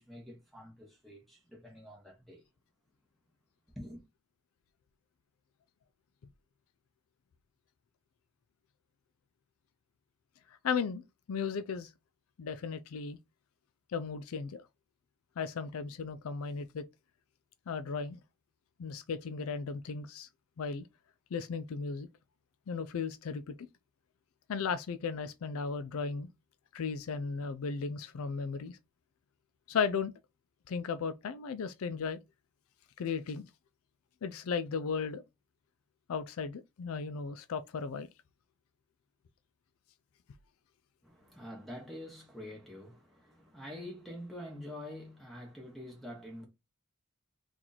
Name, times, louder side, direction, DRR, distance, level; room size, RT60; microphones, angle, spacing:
voice 1, 0.0-2.4 3.8-4.0 41.0-46.5, left 1 dB, ahead, 1.0 m, -46 dB
voice 2, 10.6-11.9 12.4-13.2 13.9-14.6 15.4-16.9 17.7-18.2 18.8-20.3 20.6-20.9 21.3-22.1 22.7-23.5 24.5-26.3 26.7-28.8 29.7-30.1 30.7-32.2 33.0-33.5 34.2-35.2 36.1-38.1, left 5 dB, 75° left, 0.4 m, -35 dB
2.9 x 2.5 x 3.9 m
head